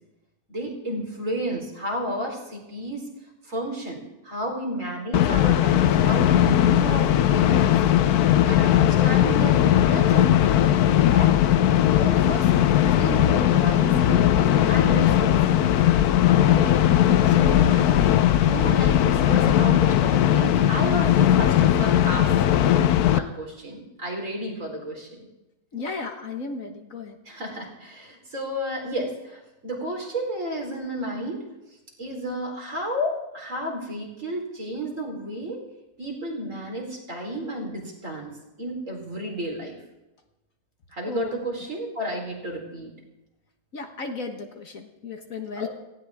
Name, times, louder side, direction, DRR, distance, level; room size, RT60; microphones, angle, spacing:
voice 1, 0.5-3.1 3.4-7.7 8.5-11.3 11.9-14.3 14.7-15.7 16.4-16.8 17.2-25.2 27.3-31.5 32.0-35.6 36.0-38.3 38.6-39.8 40.9-42.9 45.5-45.7, equal, 50° right, 0 dB, 4.5 m, -32 dB
sound 1, 5.1-23.2, left 11 dB, 70° left, 1.2 m, -19 dB
voice 2, 25.7-27.2 41.1-41.3 43.7-45.7, left 4 dB, 55° left, 4 dB, 1.8 m, -34 dB
18.5 x 16.5 x 3.6 m, 0.98 s
omnidirectional pair, 1.8 m